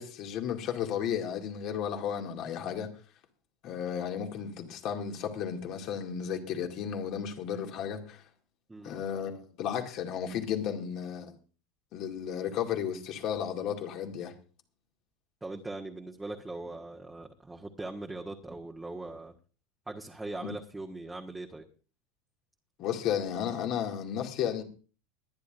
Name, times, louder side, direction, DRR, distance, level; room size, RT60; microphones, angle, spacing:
voice 1, 0.0-2.9 3.6-8.2 8.8-11.4 11.9-14.3 20.4-20.5 22.8-24.6, left 8 dB, 50° left, 2.2 m, -33 dB
voice 2, 15.4-19.3 19.9-21.7, right 2 dB, 10° right, 1.5 m, -40 dB
22.5 x 10.0 x 2.6 m
hypercardioid pair, 80°, 0 cm